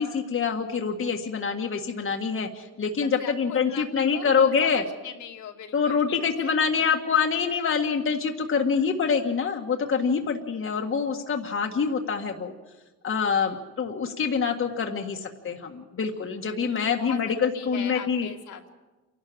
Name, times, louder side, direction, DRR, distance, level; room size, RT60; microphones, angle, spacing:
voice 1, 0.0-4.8 5.7-12.5 13.0-18.3, left 6 dB, 45° left, 2 dB, 1.7 m, -25 dB
voice 2, 3.0-6.8 7.1-7.2 8.8-8.9 10.0-10.3 13.2-13.7 16.6-18.7, left 8 dB, 75° left, 2 dB, 2.5 m, -41 dB
27.5 x 12.0 x 8.7 m, 1.1 s
cardioid pair, 90°, 30 cm